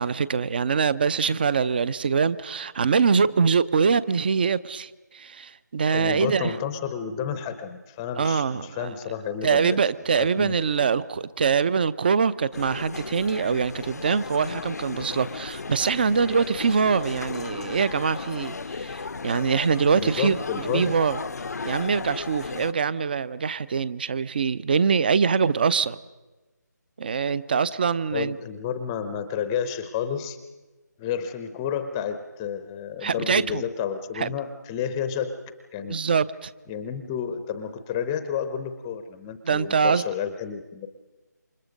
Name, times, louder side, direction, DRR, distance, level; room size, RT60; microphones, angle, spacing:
voice 1, 0.0-6.5 8.2-8.9 9.4-21.2 21.6-26.0 27.0-28.4 33.0-33.6 34.2-34.3 35.9-36.5 39.5-40.0, right 5 dB, 30° right, 19 dB, 0.6 m, -24 dB
voice 2, 5.9-9.8 10.1-10.9 19.9-20.9 28.1-30.4 31.0-35.4 35.7-36.0 36.7-40.9, left 8 dB, 10° left, 10 dB, 0.7 m, -31 dB
sound 1, 12.5-22.7, left 4 dB, 60° left, 0.7 m, -35 dB
28.0 x 25.5 x 5.3 m, 1.2 s
figure-of-eight pair, 160°, 10 cm